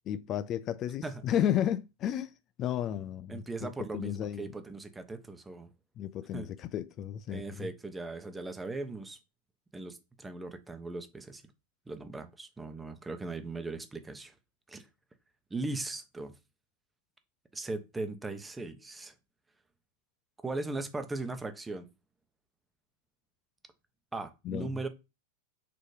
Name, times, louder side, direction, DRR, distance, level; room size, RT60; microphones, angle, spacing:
voice 1, 0.0-2.3 2.6-4.5 6.0-7.7 24.5-24.7, left 10 dB, 35° left, 0.4 m, -33 dB
voice 2, 3.3-5.7 6.3-6.5 7.3-9.2 9.7-11.4 11.9-14.3 14.7-14.9 15.5-16.4 17.5-19.1 20.4-21.9 24.1-24.9, right 3 dB, 10° right, 1.0 m, -38 dB
6.7 x 3.0 x 5.0 m
hypercardioid pair, 125°, 0 cm